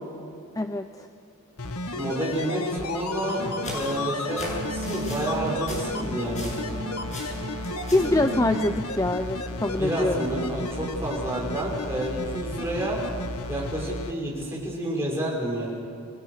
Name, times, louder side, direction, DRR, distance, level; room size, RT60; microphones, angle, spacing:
voice 1, 0.6-1.1 7.9-10.3, left 2 dB, 15° left, 7 dB, 0.6 m, -24 dB
sound 1, 1.6-14.1 14.4-14.5, left 2 dB, 80° left, 1.8 m, -33 dB
voice 2, 1.9-3.4 3.7-6.5 9.8-13.0 13.5-15.9, right 1 dB, 10° right, -3 dB, 6.3 m, -29 dB
sound 2, 3.2-6.8 7.1-8.2, left 2 dB, 30° left, 7.5 m, -39 dB
sound 3, 3.2-8.8, right 2 dB, 55° right, 2.4 m, -36 dB
29.0 x 22.0 x 6.6 m, 2.4 s
head